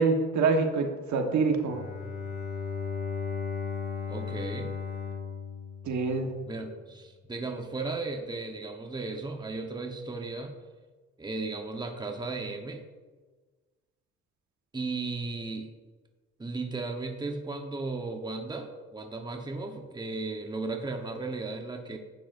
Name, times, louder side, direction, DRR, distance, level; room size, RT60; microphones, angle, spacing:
voice 1, 0.0-1.8 5.8-6.3, right 4 dB, 70° right, 4 dB, 1.3 m, -25 dB
Bowed string instrument, 1.6-6.6, left 5 dB, 35° left, 2.5 m, -36 dB
voice 2, 4.1-4.7 6.5-10.5 11.2-12.8 14.7-15.7 16.4-22.0, right 3 dB, 15° right, 4 dB, 1.0 m, -35 dB
11.5 x 8.9 x 2.5 m, 1.3 s
cardioid pair, 90°, 30 cm